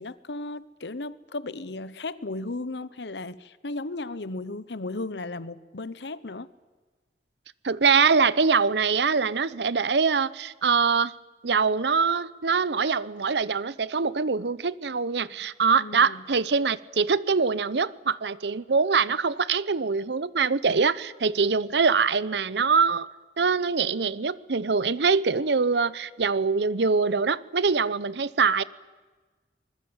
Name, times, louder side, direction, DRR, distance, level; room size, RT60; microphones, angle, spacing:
voice 1, 0.0-6.5 15.8-16.2, left 2 dB, 75° left, 1.0 m, -35 dB
voice 2, 7.6-11.1 11.4-23.1 23.4-28.6, right 5 dB, 75° right, 0.7 m, -23 dB
24.5 x 21.0 x 8.9 m
head